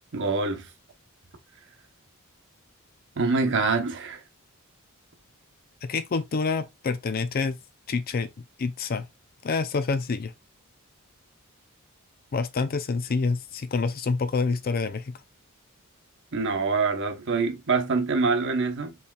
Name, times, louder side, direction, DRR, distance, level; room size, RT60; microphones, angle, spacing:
voice 1, 0.1-0.7 3.2-4.2 16.3-18.9, right 4 dB, 55° right, 0.9 m, -25 dB
voice 2, 5.8-7.6 7.9-8.3 8.6-9.1 9.4-10.3 12.3-15.1, left 4 dB, 45° left, 0.4 m, -27 dB
5.5 x 3.2 x 2.3 m
head